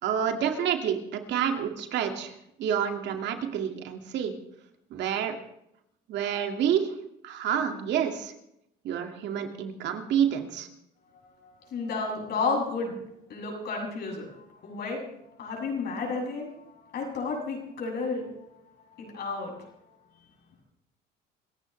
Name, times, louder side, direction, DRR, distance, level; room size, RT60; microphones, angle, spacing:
voice 1, 0.0-2.3 2.6-4.3 4.9-5.4 6.1-6.9 7.2-8.3 8.8-10.7, right 8 dB, 70° right, 4 dB, 2.3 m, -28 dB
voice 2, 11.1-13.0 13.3-18.6 18.9-19.7, left 4 dB, 60° left, -1 dB, 7.5 m, -33 dB
26.5 x 15.0 x 3.4 m, 0.80 s
supercardioid pair, 90°, 19 cm